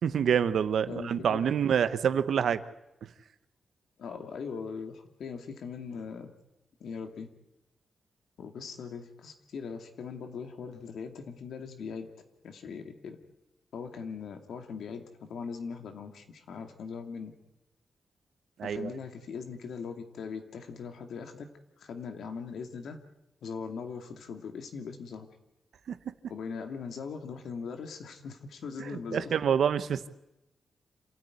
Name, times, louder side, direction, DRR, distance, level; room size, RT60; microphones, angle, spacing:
voice 1, 0.0-2.6 18.6-18.9 25.9-26.1 28.8-30.1, right 8 dB, 80° right, 12 dB, 1.0 m, -27 dB
voice 2, 0.9-1.4 4.0-6.3 6.8-7.3 8.4-12.1 12.4-13.2 13.7-17.3 18.6-21.5 21.8-23.0 23.4-25.3 26.2-29.3, left 5 dB, 85° left, 6 dB, 2.4 m, -40 dB
27.0 x 14.0 x 9.6 m, 0.93 s
wide cardioid pair, 110°, 0 cm